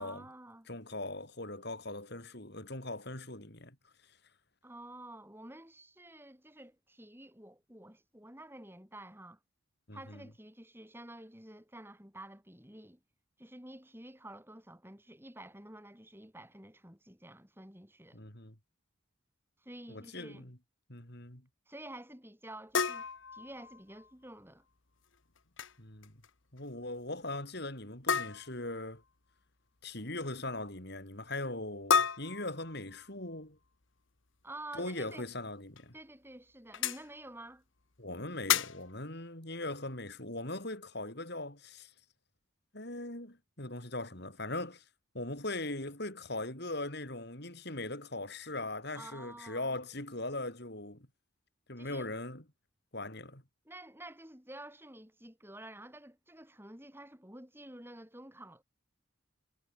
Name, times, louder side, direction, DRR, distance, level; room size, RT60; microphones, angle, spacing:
voice 1, 0.0-0.7 4.6-9.4 9.9-13.0 13.4-18.2 19.6-20.5 21.7-24.6 34.4-35.3 35.9-37.6 48.9-49.8 51.8-52.1 53.6-58.6, right 1 dB, 10° right, 8.0 m, -50 dB
voice 2, 0.7-3.8 9.9-10.2 18.1-18.6 19.9-20.6 20.9-21.5 25.8-26.1 26.5-29.0 29.8-33.6 34.7-35.9 38.0-41.9 42.7-44.8 45.1-51.1 51.7-52.4 52.9-53.4, left 2 dB, 55° left, 5.6 m, -40 dB
sound 1, 22.7-24.1 25.4-25.7 26.0-26.3 26.6-26.7 28.1-28.7 31.9-33.1 35.1-35.2 35.8-35.9 36.7-37.1 38.5-38.9, left 6 dB, 70° left, 1.5 m, -32 dB
head